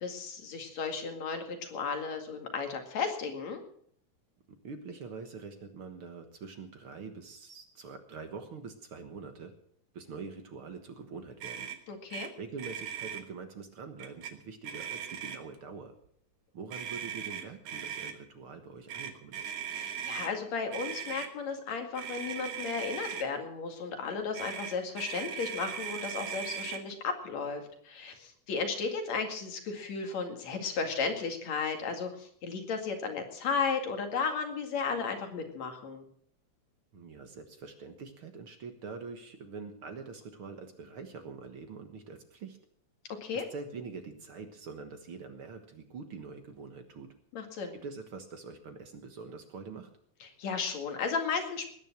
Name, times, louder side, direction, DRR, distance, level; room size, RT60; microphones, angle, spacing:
voice 1, 0.0-3.6 11.9-12.3 19.7-36.0 43.2-43.5 47.3-47.8 50.2-51.7, left 5 dB, 60° left, 5 dB, 3.4 m, -34 dB
voice 2, 4.6-9.5 9.9-11.7 12.4-15.9 16.5-19.5 36.9-42.6 43.5-47.1 47.8-49.9, right 5 dB, 50° right, 6 dB, 1.9 m, -44 dB
Motor vehicle (road), 11.4-11.8 12.1-12.3 12.6-13.2 14.0-14.3 14.6-15.6 16.7-18.1 18.9-20.3 20.7-21.3 22.0-23.3 24.3-26.8, right 8 dB, 75° right, 2.8 m, -39 dB
19.5 x 10.0 x 6.1 m, 0.63 s
omnidirectional pair, 3.5 m